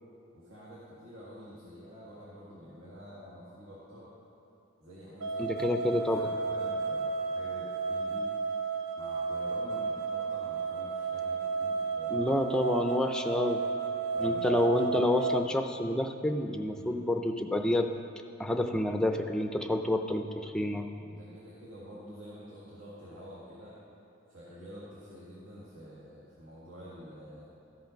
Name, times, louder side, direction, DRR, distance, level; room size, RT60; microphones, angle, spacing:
voice 1, 0.3-4.1 4.8-8.3 9.0-12.4 14.0-15.0 16.7-17.0 20.7-23.8 24.3-27.5, equal, 70° right, -8 dB, 1.8 m, -48 dB
sound 1, 5.2-15.4, right 4 dB, 90° right, 0.7 m, -33 dB
voice 2, 5.4-6.3 12.1-13.6 14.2-17.9 18.4-20.9, left 1 dB, 5° left, 5 dB, 0.4 m, -28 dB
13.5 x 5.7 x 5.2 m, 2.8 s
head